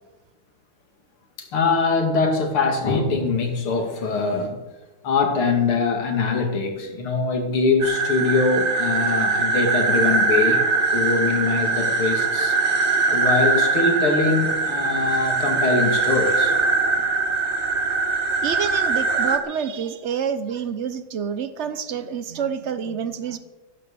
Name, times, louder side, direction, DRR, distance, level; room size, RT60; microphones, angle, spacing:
voice 1, 1.4-4.6 5.0-10.6 10.9-12.6 13.1-16.5, left 4 dB, 75° left, 3 dB, 3.0 m, -22 dB
sound 1, 7.8-19.4, right 4 dB, 35° right, 1.6 m, -22 dB
voice 2, 18.4-23.4, right 7 dB, 80° right, 12 dB, 0.6 m, -28 dB
14.5 x 11.5 x 7.0 m, 1.1 s
omnidirectional pair, 2.4 m